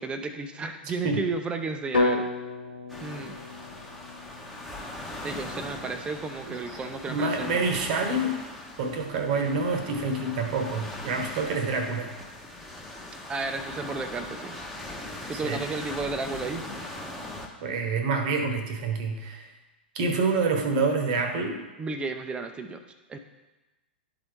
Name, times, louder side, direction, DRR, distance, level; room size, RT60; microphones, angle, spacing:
voice 1, 0.0-2.3 3.0-3.4 5.2-7.6 9.1-9.2 13.3-14.6 15.3-16.7 21.8-22.8 23.1-23.2, right 4 dB, 15° right, 8 dB, 0.7 m, -33 dB
sound 1, 1.9-6.0, left 3 dB, 70° left, 1.0 m, -32 dB
sound 2, 2.9-17.5, left 1 dB, ahead, 1.1 m, -40 dB
voice 2, 7.1-8.4 8.8-12.1 15.4-15.6 17.6-19.4 19.9-21.6, right 3 dB, 45° right, 6 dB, 1.2 m, -27 dB
12.0 x 4.0 x 3.5 m, 1.1 s
figure-of-eight pair, 100°, 6 cm